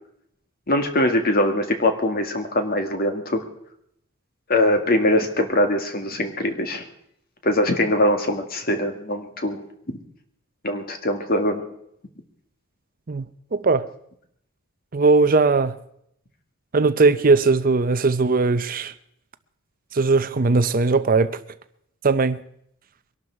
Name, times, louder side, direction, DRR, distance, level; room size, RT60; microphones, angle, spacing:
voice 1, 0.7-3.4 4.5-6.8 7.4-9.6 10.6-11.6, left 1 dB, 45° left, 2.0 m, -22 dB
voice 2, 13.5-13.9 14.9-15.7 16.7-18.9 19.9-21.4 22.0-22.4, right 3 dB, 40° right, 0.6 m, -19 dB
23.0 x 12.0 x 4.7 m
head